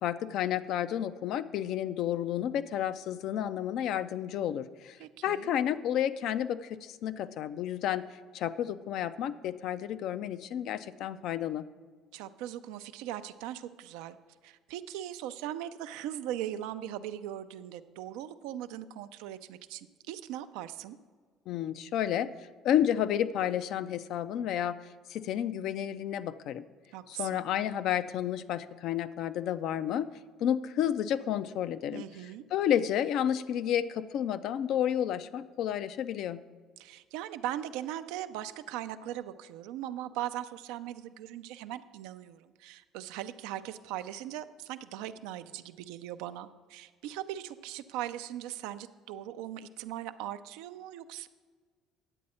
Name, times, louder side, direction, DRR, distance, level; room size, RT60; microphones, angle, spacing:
voice 1, 0.0-5.0 5.2-8.1 8.3-11.7 21.5-22.3 22.6-24.8 25.1-26.6 27.1-30.1 30.4-32.0 32.5-36.4, left 10 dB, 65° left, 13 dB, 0.4 m, -31 dB
voice 2, 5.0-5.5 12.1-14.2 14.4-21.0 26.9-27.4 31.9-32.4 36.8-51.3, right 12 dB, 80° right, 11 dB, 0.4 m, -39 dB
9.9 x 7.6 x 4.2 m, 1.5 s
supercardioid pair, 85°, 0 cm